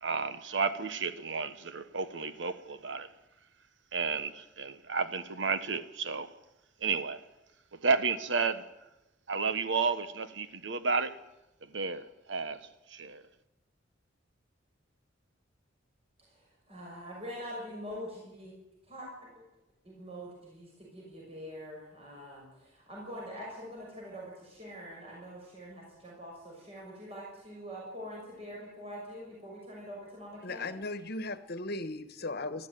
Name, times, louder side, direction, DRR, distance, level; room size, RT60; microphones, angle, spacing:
voice 1, 0.0-3.1 3.9-6.3 6.8-7.2 7.7-8.7 9.3-11.2 11.6-13.2, right 5 dB, 70° right, 1.1 m, -32 dB
voice 2, 16.3-18.5 18.9-19.3 19.8-30.8, equal, 35° right, 6.4 m, -44 dB
voice 3, 30.4-32.7, left 2 dB, 55° left, 1.3 m, -37 dB
20.0 x 14.0 x 9.3 m
head